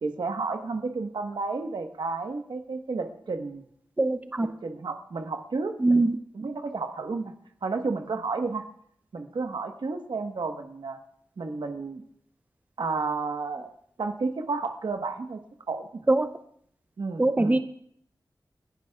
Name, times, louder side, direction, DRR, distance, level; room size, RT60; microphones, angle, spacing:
voice 1, 0.0-3.6 4.6-6.0 6.3-7.3 7.6-8.6 9.1-11.0 11.4-12.0 12.8-13.7 14.0-15.4 15.7-16.0 17.0-17.6, right 4 dB, 80° right, 5 dB, 1.3 m, -31 dB
voice 2, 4.0-4.5 5.8-6.1 16.1-16.3 17.2-17.6, right 2 dB, 20° right, 10 dB, 0.6 m, -22 dB
30.0 x 11.0 x 2.4 m, 0.66 s
wide cardioid pair, 85°, 8 cm